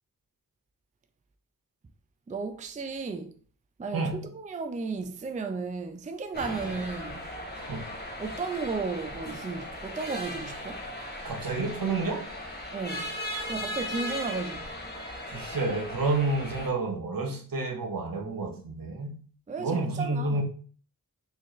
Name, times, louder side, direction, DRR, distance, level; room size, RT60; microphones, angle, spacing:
voice 1, 2.3-3.3 3.8-7.2 8.2-10.8 12.7-13.1 13.5-14.7 19.5-20.4, right 4 dB, 20° right, 0.4 m, -34 dB
sound 1, 6.3-16.7, left 1 dB, 25° left, 1.2 m, -37 dB
voice 2, 11.2-12.3 15.2-19.2 19.6-20.4, right 3 dB, 65° right, 0.8 m, -30 dB
4.0 x 2.4 x 3.0 m
wide cardioid pair, 40°, 36 cm